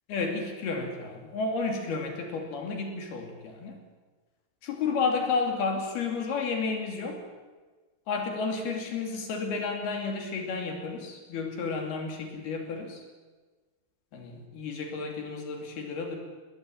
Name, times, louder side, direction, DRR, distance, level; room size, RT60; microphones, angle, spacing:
voice 1, 0.1-3.8 4.6-7.2 8.1-13.0 14.1-16.2, left 4 dB, 55° left, 3 dB, 4.2 m, -31 dB
21.5 x 18.5 x 8.7 m, 1.3 s
omnidirectional pair, 5.9 m